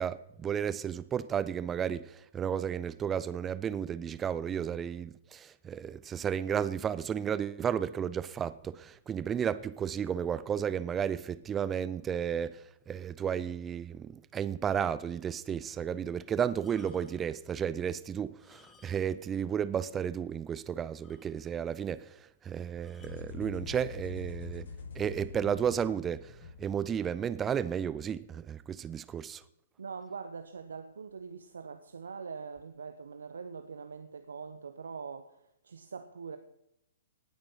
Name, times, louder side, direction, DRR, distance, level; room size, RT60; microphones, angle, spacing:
voice 1, 0.0-24.7 24.9-29.4, right 8 dB, 20° right, 0.7 m, -33 dB
sound 1, 16.5-17.3 18.3-19.3 19.6-19.7 20.2-20.3 20.6-20.7 21.0-21.7 22.8-23.3 24.1-24.4, left 5 dB, 15° left, 1.7 m, -61 dB
sound 2, 23.0-27.3, left 4 dB, 60° left, 6.5 m, -45 dB
voice 2, 29.8-36.4, right 5 dB, 70° right, 1.1 m, -43 dB
18.0 x 8.7 x 5.8 m
figure-of-eight pair, 120°, 0 cm